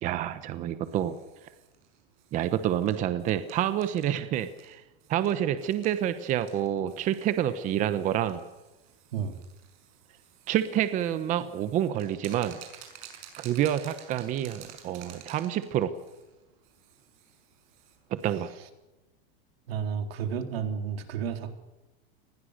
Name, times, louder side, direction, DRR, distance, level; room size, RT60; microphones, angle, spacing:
voice 1, 0.0-1.2 2.3-4.8 5.1-8.4 10.5-12.6 13.4-15.9 18.1-18.5, right 11 dB, 25° right, 11 dB, 1.0 m, -28 dB
sound 1, 0.8-18.4, right 10 dB, 55° right, 6.3 m, -53 dB
voice 2, 19.7-21.6, right 7 dB, 90° right, 6 dB, 3.8 m, -32 dB
27.5 x 20.5 x 6.7 m, 1.1 s
supercardioid pair, 170°, 29 cm